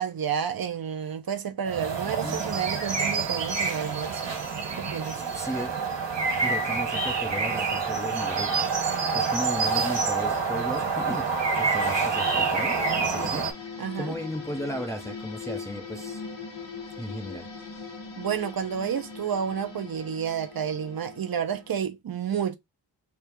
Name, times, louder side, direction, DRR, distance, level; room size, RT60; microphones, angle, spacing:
voice 1, 0.0-4.4 4.8-5.2 13.8-14.1 18.2-22.6, right 8 dB, 50° right, 0.6 m, -30 dB
sound 1, 1.7-13.5, right 4 dB, 70° right, 1.5 m, -27 dB
voice 2, 2.2-2.7 5.3-5.8 6.4-11.3 11.5-16.2 17.0-17.5, equal, 5° left, 0.5 m, -36 dB
sound 2, 11.4-21.8, left 5 dB, 85° left, 1.2 m, -41 dB
3.5 x 2.4 x 4.5 m
wide cardioid pair, 125°, 45 cm